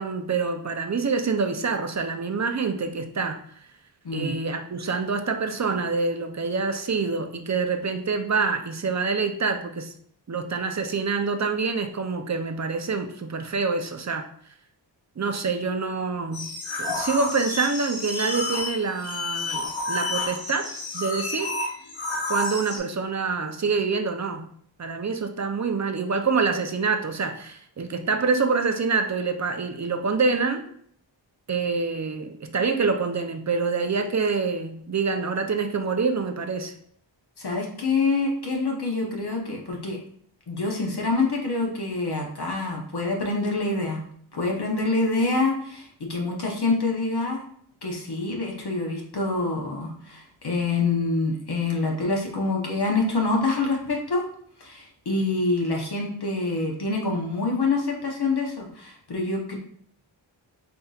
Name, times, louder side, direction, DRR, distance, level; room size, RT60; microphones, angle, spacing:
voice 1, 0.0-3.4 4.1-9.9 10.3-14.3 15.2-16.5 16.8-20.7 20.9-21.5 22.3-24.5 24.8-30.7 31.5-36.7, right 4 dB, 35° right, 5 dB, 0.5 m, -26 dB
voice 2, 4.0-4.4 37.4-40.0 40.5-44.0 44.3-47.4 47.8-54.3 54.6-59.6, left 3 dB, 55° left, 0 dB, 0.9 m, -26 dB
sound 1, 16.3-22.8, left 2 dB, 80° left, 1.0 m, -30 dB
5.6 x 2.6 x 2.4 m, 0.63 s
cardioid pair, 45°, 47 cm